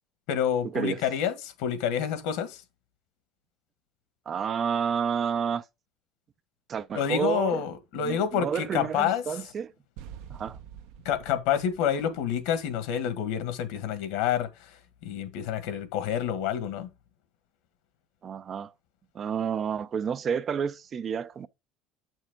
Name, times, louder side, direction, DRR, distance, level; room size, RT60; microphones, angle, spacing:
voice 1, 0.3-2.6 6.9-9.2 11.0-14.5 15.0-16.9, left 9 dB, 80° left, 1.6 m, -28 dB
voice 2, 4.3-5.6 6.7-7.6 7.9-9.7 10.3-10.6 18.2-18.7 19.1-21.5, right 7 dB, 30° right, 0.4 m, -30 dB
sound 1, 10.0-12.9, right 8 dB, 75° right, 0.9 m, -47 dB
8.0 x 6.2 x 3.7 m
cardioid pair, 160°, 0 cm